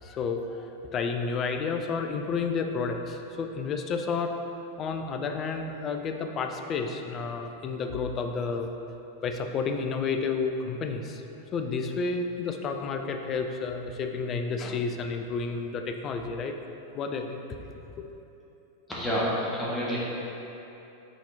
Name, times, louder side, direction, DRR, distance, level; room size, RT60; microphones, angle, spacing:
voice 1, 0.0-4.3 4.8-8.7 9.2-11.2 11.5-16.6 16.9-17.9, left 4 dB, 30° left, 5 dB, 0.4 m, -31 dB
voice 2, 18.9-20.0, equal, 10° left, -7 dB, 1.4 m, -28 dB
5.7 x 4.2 x 4.2 m, 3.0 s
figure-of-eight pair, 90°, 0 cm